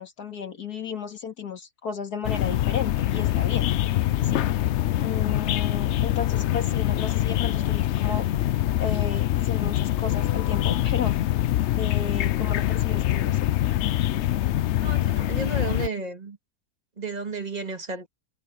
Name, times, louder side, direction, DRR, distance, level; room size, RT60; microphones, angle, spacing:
voice 1, 0.0-3.7 4.2-4.5 5.0-8.3 8.8-11.2 11.8-13.5, left 6 dB, 65° left, 2.5 m, -34 dB
sound 1, 2.2-15.9, left 13 dB, 85° left, 0.6 m, -24 dB
voice 2, 14.8-16.4 17.0-18.1, right 3 dB, 25° right, 2.0 m, -32 dB
omnidirectional pair, 1.8 m